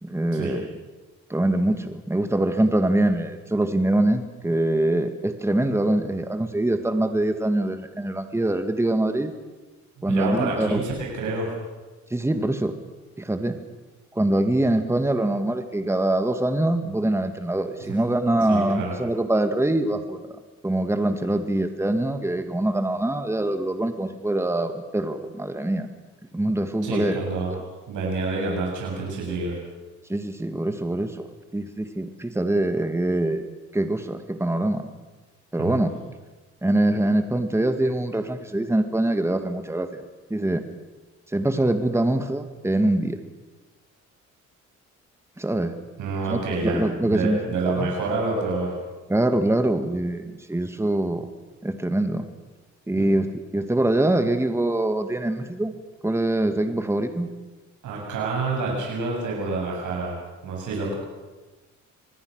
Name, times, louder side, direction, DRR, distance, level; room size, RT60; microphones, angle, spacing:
voice 1, 0.0-0.7 1.3-9.3 10.0-10.8 12.1-12.7 13.2-13.6 14.1-20.4 20.6-25.9 26.3-27.2 27.5-27.6 30.1-33.4 33.7-34.9 35.5-35.9 36.6-40.0 40.3-40.6 41.3-43.2 45.4-45.7 46.3-47.4 47.8-47.9 49.1-51.3 51.6-52.3 52.9-53.3 53.5-55.7 56.0-57.3, right 1 dB, 10° right, 7 dB, 2.1 m, -24 dB
voice 2, 10.1-11.6 17.9-18.0 18.5-18.9 26.8-27.5 27.9-29.6 35.6-35.8 46.0-46.8 47.1-48.7 53.0-53.1 57.8-60.2 60.4-61.0, right 3 dB, 80° right, -2 dB, 7.2 m, -27 dB
25.0 x 19.5 x 6.5 m, 1.2 s
cardioid pair, 90°, 30 cm